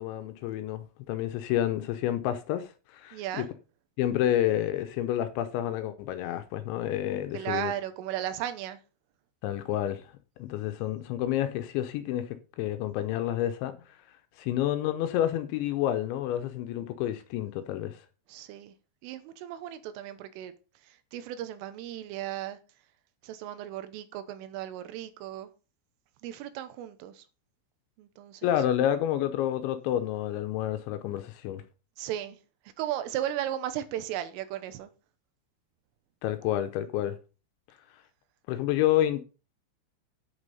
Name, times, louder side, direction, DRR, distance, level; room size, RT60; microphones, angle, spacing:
voice 1, 0.0-3.5 4.0-7.7 9.4-10.0 10.4-13.7 14.4-18.0 28.4-31.6 36.2-37.2 38.5-39.2, left 12 dB, 80° left, 2.9 m, -29 dB
voice 2, 3.1-3.5 7.3-8.8 18.3-18.7 19.0-20.5 21.1-22.6 23.2-25.5 26.2-27.2 28.0-28.5 32.0-32.4 32.8-34.9, right 12 dB, 85° right, 3.5 m, -35 dB
9.1 x 6.7 x 5.4 m
omnidirectional pair, 5.7 m